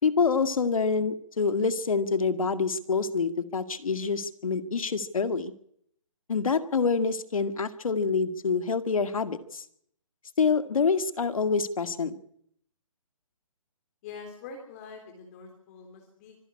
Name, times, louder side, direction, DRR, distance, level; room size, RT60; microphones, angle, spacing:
voice 1, 0.0-5.5 6.3-9.6 10.4-12.2, left 5 dB, 80° left, 11 dB, 1.9 m, -26 dB
voice 2, 14.0-16.4, left 5 dB, 25° left, 2 dB, 3.6 m, -44 dB
25.0 x 11.0 x 9.8 m, 0.70 s
hypercardioid pair, 160°, 18 cm